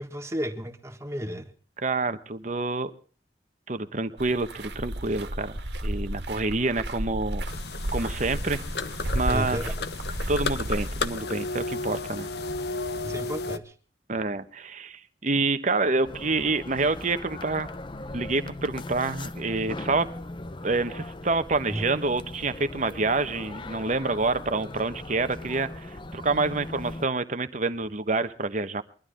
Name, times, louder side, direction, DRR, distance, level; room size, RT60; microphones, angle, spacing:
voice 1, 0.0-1.5 9.3-9.7 13.0-13.7 21.7-21.8, equal, 15° right, 1.6 m, -33 dB
voice 2, 1.8-2.9 3.7-5.6 5.8-7.4 7.9-8.6 9.1-9.6 10.3-12.3 14.1-17.7 18.1-20.1 20.6-28.8, right 3 dB, 45° right, 1.2 m, -27 dB
sound 1, 4.2-11.1, right 1 dB, 70° right, 1.9 m, -33 dB
sound 2, 7.5-13.6, left 3 dB, 65° left, 1.0 m, -33 dB
sound 3, 16.0-27.1, left 2 dB, 30° left, 0.7 m, -39 dB
22.5 x 12.5 x 3.8 m
head